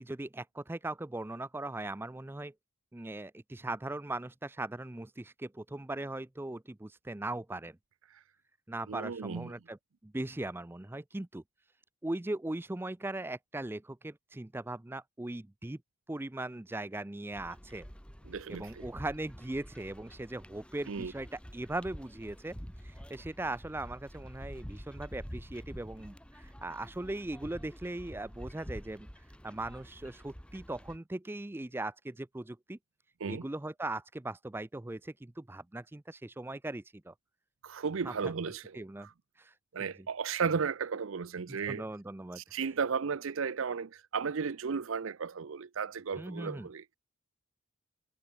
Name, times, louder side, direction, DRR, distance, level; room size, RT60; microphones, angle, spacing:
voice 1, 0.0-2.5 2.9-7.8 8.7-9.8 10.0-11.4 12.0-15.8 16.1-17.9 18.5-22.6 22.8-32.8 33.3-37.1 38.0-38.3 38.7-39.1 39.4-39.5 39.8-39.9 41.5-42.6 46.2-46.7, right 2 dB, 10° right, 0.4 m, -39 dB
voice 2, 8.9-9.5 18.3-18.9 20.9-21.1 33.2-33.4 37.6-39.1 39.7-41.8 42.4-46.9, right 5 dB, 65° right, 0.5 m, -35 dB
sound 1, 17.3-31.0, equal, 5° left, 2.8 m, -48 dB
head